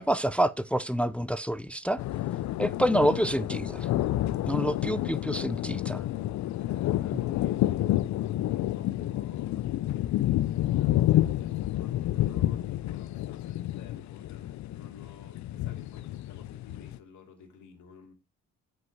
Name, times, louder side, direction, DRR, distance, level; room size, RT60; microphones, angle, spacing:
voice 1, 0.0-2.0 2.6-3.9 4.5-6.0, equal, 5° left, 0.5 m, -27 dB
sound 1, 2.0-17.0, left 14 dB, 65° left, 0.5 m, -29 dB
voice 2, 6.5-7.9 8.6-9.7 10.6-18.1, left 5 dB, 85° left, 2.7 m, -53 dB
7.6 x 6.4 x 4.6 m
cardioid pair, 90°, 30 cm